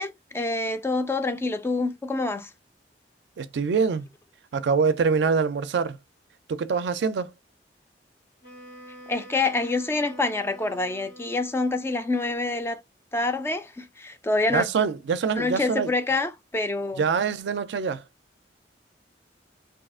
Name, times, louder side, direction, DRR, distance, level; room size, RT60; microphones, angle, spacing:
voice 1, 0.0-2.5 9.1-12.8 13.1-14.7 15.4-17.0, left 2 dB, 15° left, 0.3 m, -26 dB
voice 2, 3.4-4.1 4.5-6.0 6.5-7.3 14.5-15.9 17.0-18.0, right 5 dB, 70° right, 0.4 m, -24 dB
Wind instrument woodwind instrument, 8.4-12.0, equal, 80° left, 1.5 m, -46 dB
2.6 x 2.3 x 3.5 m
head